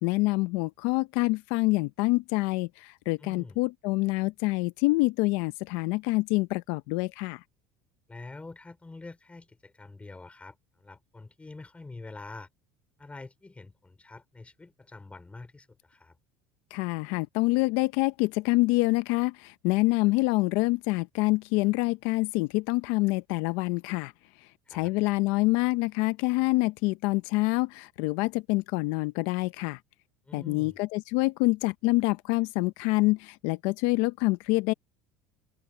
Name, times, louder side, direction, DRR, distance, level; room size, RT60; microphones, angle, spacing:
voice 1, 0.0-7.4 16.7-24.1 24.7-29.8 30.3-34.7, left 22 dB, 75° left, 0.7 m, -26 dB
voice 2, 3.2-3.6 8.1-12.5 13.0-16.2 24.7-24.9 30.2-30.8, left 3 dB, 15° left, 4.2 m, -46 dB
open air
supercardioid pair, 105°, 9 cm